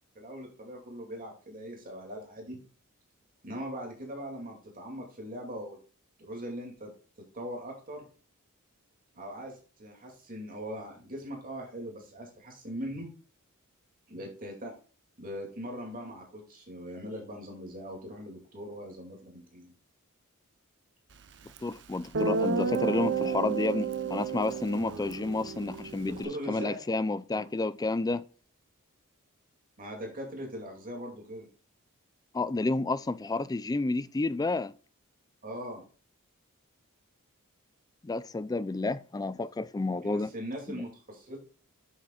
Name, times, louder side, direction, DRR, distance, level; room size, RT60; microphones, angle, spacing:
voice 1, 0.1-2.6 3.4-5.8 6.2-6.9 7.3-8.1 9.1-13.1 14.1-14.7 15.2-19.7 26.1-26.8 27.3-27.4 29.8-31.5 35.4-35.8 40.0-41.4, equal, 40° right, 2.5 m, -40 dB
voice 2, 21.6-28.2 32.3-34.7 38.0-40.3 40.7-40.8, left 3 dB, 15° left, 0.3 m, -30 dB
Guitar, 21.6-21.7 22.1-26.3, right 5 dB, 60° right, 0.8 m, -31 dB
9.3 x 7.3 x 2.4 m
head